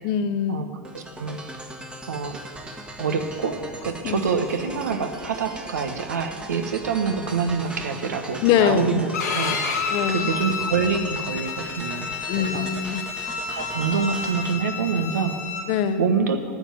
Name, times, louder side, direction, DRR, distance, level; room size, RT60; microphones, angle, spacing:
voice 1, 0.0-0.7 4.0-4.3 8.4-9.0 9.9-10.3 12.3-13.0 15.7-16.1, left 9 dB, 50° left, 11 dB, 0.8 m, -23 dB
sound 1, 0.8-14.6, right 2 dB, 10° right, 1.2 m, -39 dB
voice 2, 0.9-1.4 2.1-2.4 3.0-9.8 10.1-12.7 13.6-15.4 16.0-16.4, right 5 dB, 90° right, 7 dB, 1.2 m, -26 dB
Bowed string instrument, 9.1-15.6, left 5 dB, 85° left, 2.7 m, -30 dB
9.7 x 7.6 x 9.1 m, 2.2 s
hypercardioid pair, 105°, 9 cm